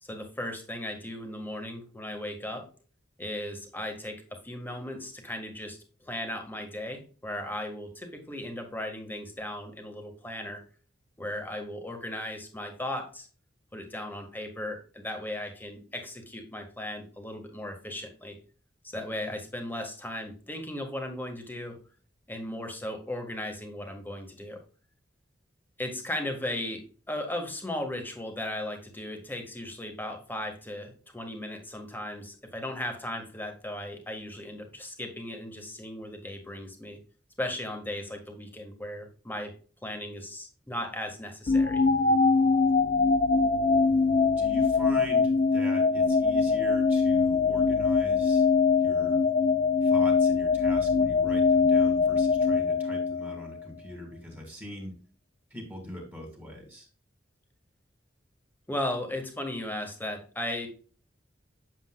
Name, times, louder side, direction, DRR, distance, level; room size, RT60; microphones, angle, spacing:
voice 1, 0.0-2.6 3.2-10.6 11.2-13.3 13.7-18.4 18.8-21.8 22.3-24.6 25.8-37.0 37.4-39.5 39.8-41.8 58.7-60.7, left 1 dB, 10° left, 3 dB, 1.4 m, -36 dB
sound 1, 41.5-53.6, left 4 dB, 40° left, 0.5 m, -23 dB
voice 2, 44.4-48.5 48.8-49.3 49.8-54.9 55.5-56.9, equal, 10° right, 1 dB, 1.9 m, -42 dB
7.6 x 7.2 x 2.2 m, 0.39 s
head